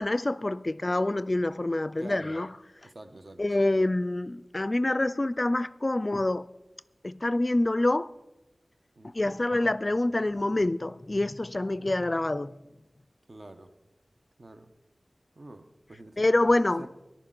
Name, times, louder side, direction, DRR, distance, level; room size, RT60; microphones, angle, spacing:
voice 1, 0.0-2.5 2.8-2.9 3.4-6.5 7.0-8.1 9.1-12.6 16.2-16.9, left 2 dB, 40° left, 0.3 m, -26 dB
voice 2, 2.0-2.4 2.8-3.6 9.0-9.5 13.3-13.7 14.4-14.7 15.4-16.3 16.8-16.9, right 2 dB, 55° right, 0.8 m, -47 dB
14.0 x 11.0 x 3.8 m
wide cardioid pair, 55°, 0 cm